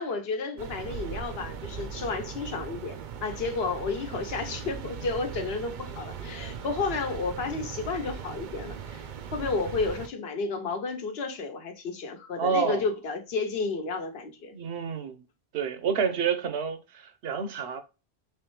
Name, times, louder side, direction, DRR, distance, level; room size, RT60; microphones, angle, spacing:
voice 1, 0.0-14.5, left 4 dB, 75° left, 1.0 m, -32 dB
sound 1, 0.6-10.1, right 7 dB, 60° right, 0.6 m, -39 dB
voice 2, 12.4-12.8 14.5-15.2 15.5-17.8, right 6 dB, 85° right, 1.0 m, -29 dB
3.5 x 3.1 x 3.0 m
omnidirectional pair, 1.1 m